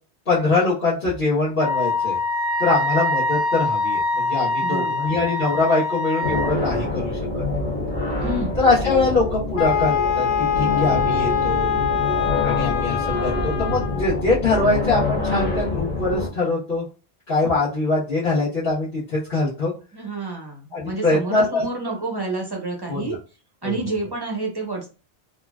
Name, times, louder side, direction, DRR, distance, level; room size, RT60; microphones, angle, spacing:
voice 1, 0.3-2.2 2.6-7.4 8.6-11.8 12.4-16.8 17.3-19.7 20.7-21.6 22.9-23.0 23.6-23.7, left 3 dB, 55° left, -10 dB, 1.2 m, -23 dB
Wind instrument woodwind instrument, 1.6-6.5, left 2 dB, 40° left, 1.0 m, -24 dB
voice 2, 4.6-5.1 8.2-8.6 19.9-23.2 23.6-24.9, right 2 dB, 30° right, 0 dB, 0.5 m, -29 dB
sound 1, 6.2-16.3, left 2 dB, 10° left, 0.7 m, -26 dB
Wind instrument woodwind instrument 2, 9.6-14.1, left 8 dB, 85° left, 1.1 m, -23 dB
3.7 x 2.3 x 2.3 m, 0.32 s
omnidirectional pair, 1.1 m